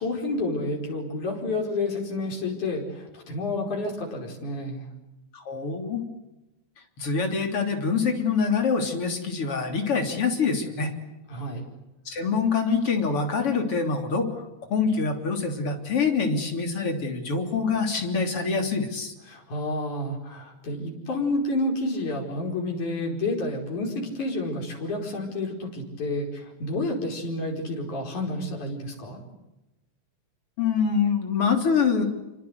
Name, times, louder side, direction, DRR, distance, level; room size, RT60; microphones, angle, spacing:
voice 1, 0.0-4.8 11.3-11.6 19.3-29.2, left 2 dB, 90° left, 1 dB, 6.4 m, -30 dB
voice 2, 5.3-6.1 7.0-10.9 12.1-14.4 14.7-19.1 30.6-32.1, left 5 dB, 50° left, 4 dB, 4.1 m, -25 dB
27.5 x 25.0 x 8.2 m, 0.97 s
omnidirectional pair, 3.3 m